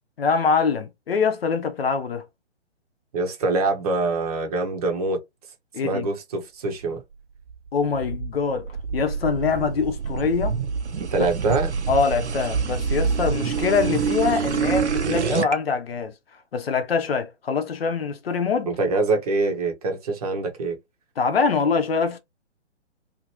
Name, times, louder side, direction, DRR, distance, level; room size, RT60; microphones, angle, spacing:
voice 1, 0.2-2.2 5.7-6.1 7.7-10.6 11.5-11.6 11.9-16.1 16.5-18.7 21.2-22.2, left 5 dB, 55° left, 0.8 m, -24 dB
voice 2, 3.1-5.2 5.8-7.0 11.0-11.7 18.7-20.8, right 3 dB, 35° right, 0.8 m, -24 dB
sound 1, 7.5-15.5, right 6 dB, 75° right, 0.7 m, -26 dB
2.9 x 2.5 x 2.9 m
figure-of-eight pair, 130°, 35 cm